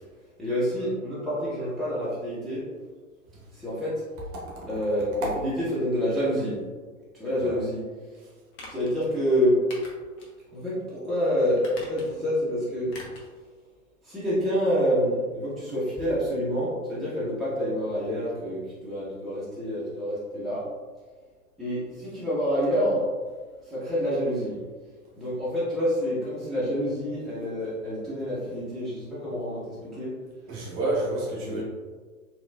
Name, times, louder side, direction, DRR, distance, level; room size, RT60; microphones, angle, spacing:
voice 1, 0.4-2.6 3.5-3.9 4.7-6.5 7.1-7.8 8.7-9.6 10.5-12.9 14.0-20.6 21.6-23.0 23.7-24.5 25.1-30.1 31.4-31.6, equal, ahead, -11 dB, 0.8 m, -27 dB
voice 2, 4.4-4.8 7.4-7.6 30.5-31.6, right 2 dB, 30° right, -3 dB, 1.1 m, -30 dB
sound 1, 8.5-8.9 9.7-10.3 10.7-10.8 11.5-12.3 12.9-13.3 13.6-13.7, left 2 dB, 40° left, 1.0 m, -44 dB
4.0 x 2.9 x 2.3 m, 1.4 s
figure-of-eight pair, 105°, 43 cm